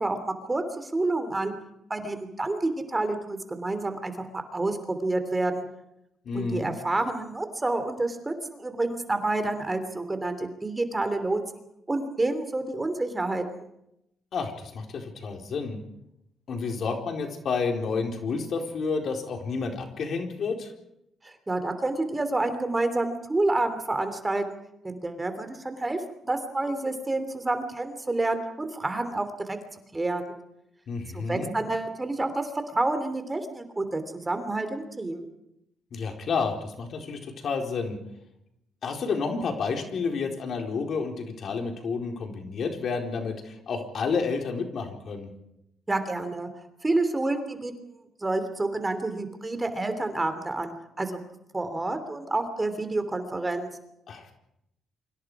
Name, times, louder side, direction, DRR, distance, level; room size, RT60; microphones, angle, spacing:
voice 1, 0.0-1.5 1.9-5.6 6.3-11.6 11.9-13.4 21.2-24.4 24.8-29.6 29.9-30.3 31.1-35.3 45.9-46.5 46.8-47.7 48.2-51.2 51.5-53.7, right 2 dB, 20° right, 9 dB, 3.1 m, -29 dB
voice 2, 6.2-6.7 14.3-15.8 16.5-20.7 30.9-31.5 35.9-38.0 38.8-45.3 54.1-54.3, left 4 dB, 60° left, 3 dB, 4.4 m, -30 dB
29.0 x 25.0 x 5.0 m, 0.81 s
cardioid pair, 90°, 0 cm